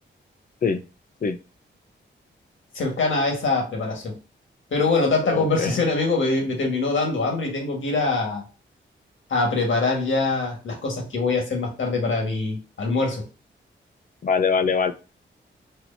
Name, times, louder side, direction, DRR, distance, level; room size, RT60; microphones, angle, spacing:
voice 1, 2.7-4.1 4.7-8.4 9.3-13.2, left 3 dB, 75° left, 1 dB, 1.6 m, -23 dB
voice 2, 5.3-5.8 14.2-14.9, left 5 dB, 45° left, 9 dB, 0.5 m, -23 dB
4.4 x 2.9 x 2.7 m, 0.33 s
wide cardioid pair, 105°, 20 cm